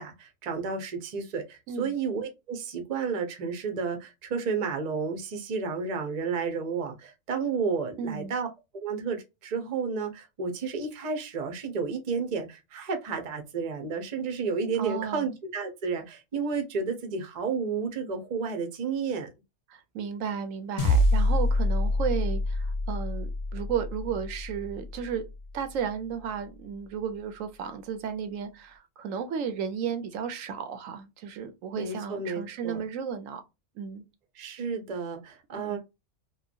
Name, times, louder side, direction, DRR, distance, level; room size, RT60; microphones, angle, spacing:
voice 1, 0.0-8.5 8.7-19.3 31.8-32.8 34.3-35.8, right 5 dB, 45° right, 0.6 m, -31 dB
voice 2, 8.0-8.3 14.8-15.2 19.7-25.2 25.5-33.4 33.8-34.0 35.6-35.8, right 7 dB, 85° right, 1.0 m, -34 dB
sound 1, 20.8-25.4, left 1 dB, 40° left, 0.5 m, -26 dB
3.0 x 2.2 x 2.5 m
omnidirectional pair, 1.3 m